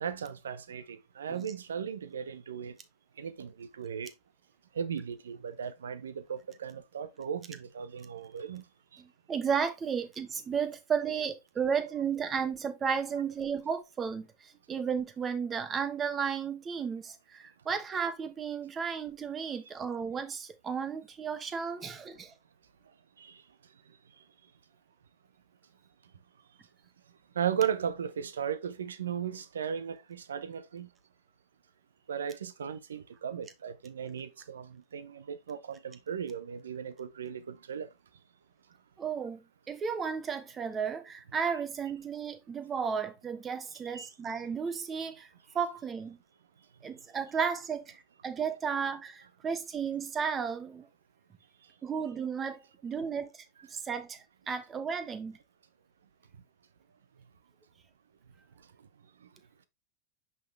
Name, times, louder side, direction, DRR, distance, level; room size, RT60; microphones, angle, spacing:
voice 1, 0.0-2.7 3.2-4.1 4.7-8.6 8.9-9.0 19.4-19.5 23.2-23.4 27.3-30.9 32.1-37.9 43.9-44.1, right 8 dB, 80° right, 0.7 m, -36 dB
voice 2, 9.0-22.3 39.0-45.3 45.5-46.2 46.8-47.9 48.2-50.9 51.8-53.4 53.7-55.4, right 6 dB, 25° right, 1.3 m, -33 dB
5.7 x 5.4 x 3.3 m
hypercardioid pair, 95°, 0 cm